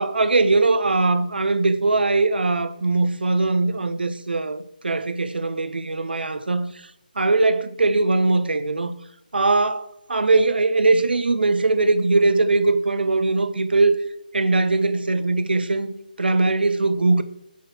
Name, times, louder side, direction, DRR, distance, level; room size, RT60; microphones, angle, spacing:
voice 1, 0.0-6.7 7.2-8.9 9.3-14.0 14.3-17.2, right 3 dB, 90° right, 0.6 m, -20 dB
7.2 x 3.7 x 4.4 m
figure-of-eight pair, 175°, 5 cm